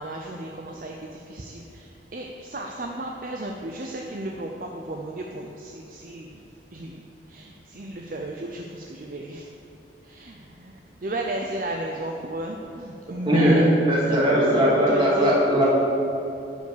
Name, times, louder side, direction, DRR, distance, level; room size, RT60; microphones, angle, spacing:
voice 1, 0.0-6.4 6.7-7.0 7.3-9.4 10.0-13.6 14.0-15.4, right 1 dB, 50° right, 1 dB, 0.6 m, -34 dB
voice 2, 13.3-15.7, equal, 25° right, -6 dB, 2.5 m, -19 dB
11.0 x 5.4 x 6.8 m, 2.8 s
head